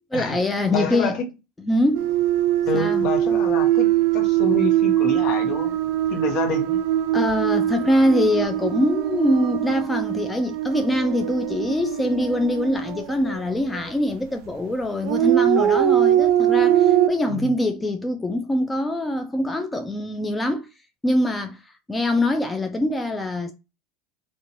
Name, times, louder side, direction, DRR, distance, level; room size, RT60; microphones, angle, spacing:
voice 1, 0.1-1.1 1.6-2.1 2.7-3.0 7.1-20.7 21.0-21.6 21.9-23.5, left 1 dB, 15° left, 0.4 m, -23 dB
voice 2, 0.7-1.3 2.7-5.7 6.1-6.8 17.3-17.5, left 4 dB, 55° left, 0.8 m, -28 dB
sound 1, 1.9-13.9 15.0-17.1, right 12 dB, 60° right, 0.3 m, -22 dB
2.6 x 2.2 x 2.6 m
hypercardioid pair, 80°, 0 cm